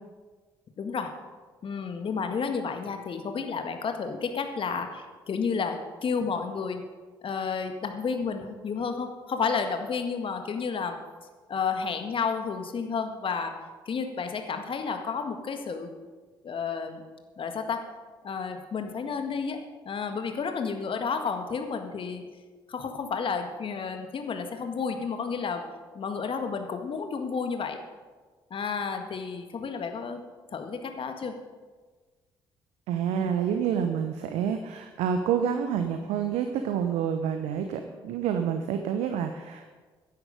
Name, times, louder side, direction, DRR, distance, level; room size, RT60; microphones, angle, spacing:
voice 1, 0.8-1.1 1.6-6.8 7.2-11.0 11.5-13.5 13.9-15.9 16.4-17.0 17.4-17.8 18.2-19.6 19.9-22.3 22.7-25.6 26.0-27.8 28.5-30.2 30.5-31.3 33.1-33.3, left 5 dB, 45° left, 6 dB, 1.8 m, -31 dB
voice 2, 32.9-39.8, right 8 dB, 70° right, 6 dB, 0.9 m, -28 dB
16.0 x 10.5 x 5.2 m, 1.4 s
figure-of-eight pair, 45°, 12 cm